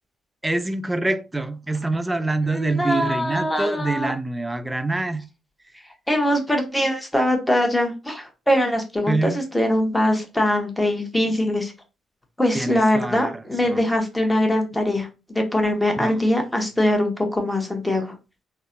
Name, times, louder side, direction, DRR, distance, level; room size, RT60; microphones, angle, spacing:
voice 1, 0.4-5.3 9.1-9.4 12.5-13.3 13.6-13.8 16.0-16.2, right 2 dB, 15° right, 0.4 m, -25 dB
voice 2, 2.5-4.1 6.1-11.7 12.4-18.1, left 1 dB, 10° left, 1.0 m, -22 dB
3.9 x 2.1 x 2.5 m
figure-of-eight pair, 40°, 0 cm